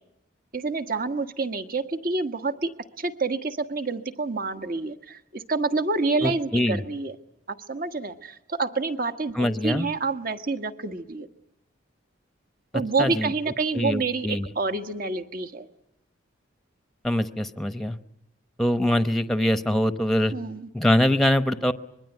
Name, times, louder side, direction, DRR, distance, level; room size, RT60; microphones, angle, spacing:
voice 1, 0.5-2.7 3.0-7.2 7.5-11.3 12.7-15.7 20.3-20.7, right 3 dB, 50° right, 8 dB, 1.6 m, -28 dB
voice 2, 6.2-6.8 9.4-9.9 13.0-13.3 13.7-14.5 17.0-18.0 18.6-20.3 20.7-21.7, left 1 dB, ahead, 10 dB, 0.9 m, -23 dB
25.5 x 21.5 x 9.4 m, 0.83 s
head